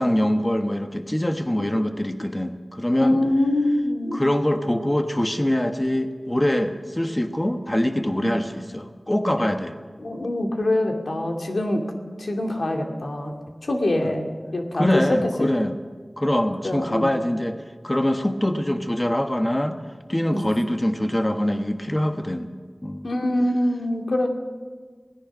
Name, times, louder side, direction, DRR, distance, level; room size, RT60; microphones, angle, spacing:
voice 1, 0.0-3.2 4.1-9.7 14.7-15.7 16.2-19.8 20.1-22.5 22.8-23.1, left 1 dB, 20° left, 7 dB, 1.2 m, -24 dB
voice 2, 3.0-4.2 8.2-8.4 10.0-11.8 12.2-13.3 13.6-15.5 16.6-17.1 20.3-20.5 23.0-24.3, left 1 dB, 85° left, 3 dB, 2.5 m, -24 dB
26.5 x 17.5 x 6.1 m, 1.5 s
wide cardioid pair, 60°, 0 cm